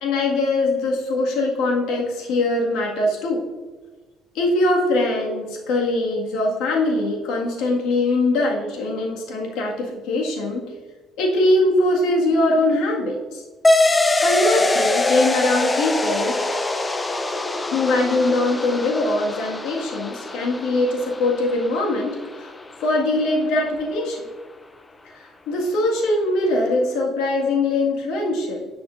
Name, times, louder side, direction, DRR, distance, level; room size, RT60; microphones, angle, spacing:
voice 1, 0.0-3.4 4.3-10.6 11.2-13.4 14.2-16.4 17.7-22.5 22.8-24.3 25.1-28.7, left 2 dB, 85° left, -1 dB, 1.8 m, -22 dB
sound 1, 13.6-22.7, left 2 dB, 15° left, 0.5 m, -23 dB
11.0 x 5.9 x 2.5 m, 1.4 s
cardioid pair, 130°, 0 cm